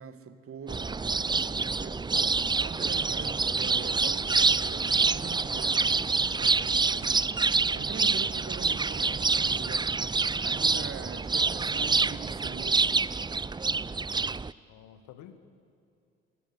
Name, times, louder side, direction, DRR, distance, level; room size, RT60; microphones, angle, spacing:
voice 1, 0.0-2.0 2.6-7.2 7.7-9.9 10.4-13.0, right 7 dB, 45° right, 11 dB, 2.0 m, -43 dB
sound 1, 0.7-14.5, right 4 dB, 15° right, 0.6 m, -27 dB
voice 2, 8.2-8.8 14.7-15.4, left 10 dB, 65° left, 11 dB, 1.8 m, -51 dB
29.0 x 21.0 x 8.5 m, 2.6 s
figure-of-eight pair, 50°, 31 cm